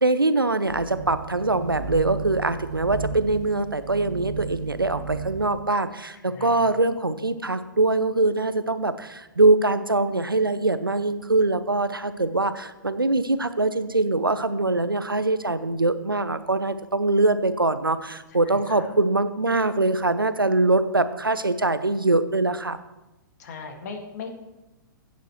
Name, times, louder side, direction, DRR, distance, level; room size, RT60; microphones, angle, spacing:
voice 1, 0.0-22.8, right 2 dB, 85° right, 13 dB, 0.7 m, -23 dB
sound 1, 0.6-5.6, right 5 dB, 55° right, 2.0 m, -35 dB
voice 2, 6.3-6.8 18.3-18.9 23.4-24.3, left 5 dB, 50° left, 3 dB, 2.0 m, -39 dB
16.5 x 9.3 x 3.1 m, 1.0 s
figure-of-eight pair, 110°, 11 cm